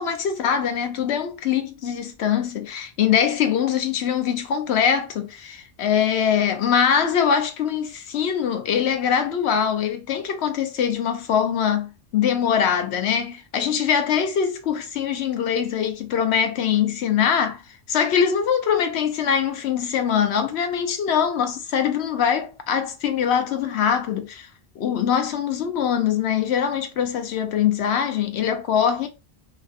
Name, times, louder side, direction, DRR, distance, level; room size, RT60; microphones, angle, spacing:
voice 1, 0.0-17.6 17.9-24.5 24.8-29.1, left 8 dB, 75° left, 0.9 m, -23 dB
3.2 x 2.5 x 2.4 m
omnidirectional pair, 1.1 m